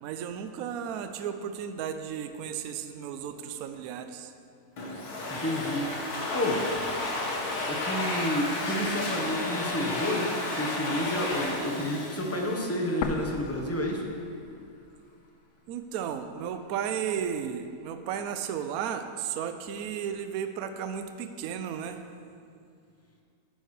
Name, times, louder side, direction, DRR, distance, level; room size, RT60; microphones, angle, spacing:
voice 1, 0.0-4.3 15.7-22.0, right 8 dB, 70° right, 8 dB, 1.0 m, -34 dB
Domestic sounds home sounds, 4.8-13.2, left 2 dB, 70° left, 1.8 m, -32 dB
voice 2, 5.3-5.9 6.3-6.7 7.7-14.1, left 1 dB, 10° left, 0 dB, 0.7 m, -30 dB
sound 1, 13.0-15.0 15.2-15.3 16.1-17.0, left 6 dB, 85° left, 1.2 m, -37 dB
10.5 x 10.0 x 3.2 m, 2.3 s
omnidirectional pair, 1.7 m